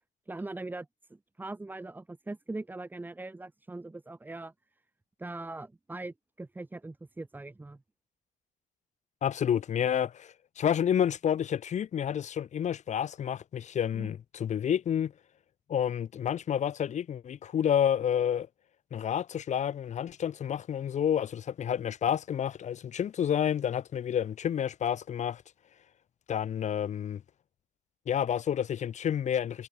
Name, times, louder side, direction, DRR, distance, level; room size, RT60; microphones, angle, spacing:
voice 1, 0.3-4.5 5.2-7.8 13.9-14.1, right 2 dB, 10° right, 1.0 m, -41 dB
voice 2, 9.2-15.1 15.7-18.5 18.9-25.4 26.3-27.2 28.1-29.7, left 9 dB, 45° left, 1.0 m, -29 dB
cardioid pair, 110°, 17 cm